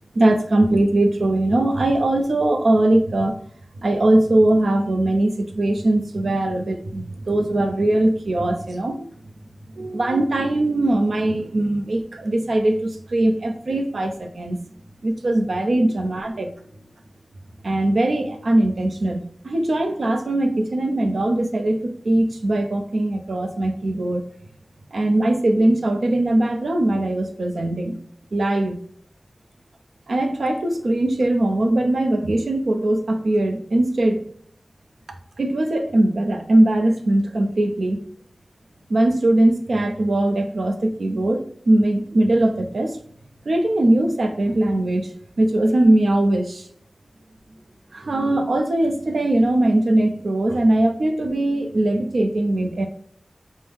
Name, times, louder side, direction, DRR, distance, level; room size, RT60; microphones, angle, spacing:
voice 1, 0.2-3.3 3.8-9.1 9.8-14.6 15.0-16.5 17.6-24.2 24.9-28.0 28.3-28.8 30.1-34.2 35.4-38.0 38.9-43.0 43.5-45.1 45.4-46.6 47.9-52.9, right 1 dB, 85° right, 5 dB, 0.6 m, -20 dB
5.4 x 2.1 x 3.4 m, 0.63 s
wide cardioid pair, 60°, 0 cm